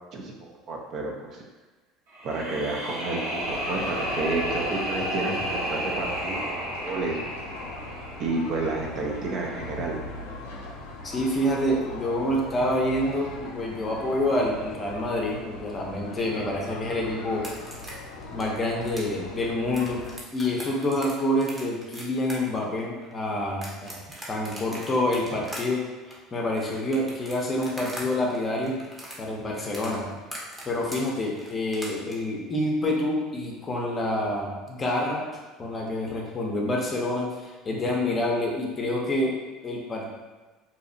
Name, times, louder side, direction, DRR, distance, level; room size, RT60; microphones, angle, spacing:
voice 1, 0.1-1.4 2.2-7.3 8.2-10.0, right 3 dB, 50° right, 0 dB, 0.4 m, -31 dB
sound 1, 2.1-9.2, equal, 80° right, 1.1 m, -32 dB
sound 2, 3.4-20.2, left 2 dB, 85° left, 0.4 m, -39 dB
voice 2, 11.0-17.5 18.3-20.0 20.3-24.0 24.3-25.8 26.3-28.8 29.2-30.1 30.6-35.3 35.6-39.4 39.6-40.1, left 1 dB, 30° left, -1 dB, 0.6 m, -27 dB
sound 3, 17.3-28.0 28.3-32.1, equal, 15° right, 0.7 m, -41 dB
2.7 x 2.0 x 2.6 m, 1.3 s
supercardioid pair, 95°, 0 cm